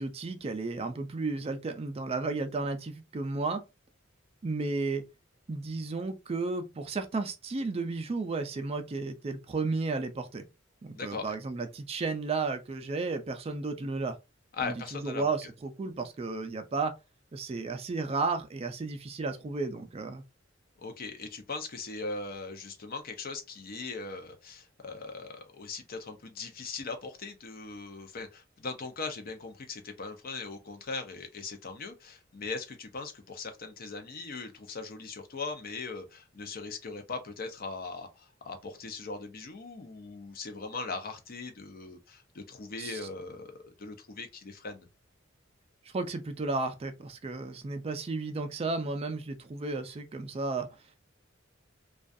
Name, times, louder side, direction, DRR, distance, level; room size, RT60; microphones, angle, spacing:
voice 1, 0.0-3.6 4.4-5.0 5.5-10.4 10.8-14.2 14.6-16.9 17.3-20.2 42.8-43.0 45.9-50.7, right 3 dB, 30° right, 0.3 m, -33 dB
voice 2, 10.9-11.4 14.6-15.3 20.8-44.9, left 4 dB, 50° left, 0.5 m, -40 dB
2.3 x 2.3 x 2.5 m
head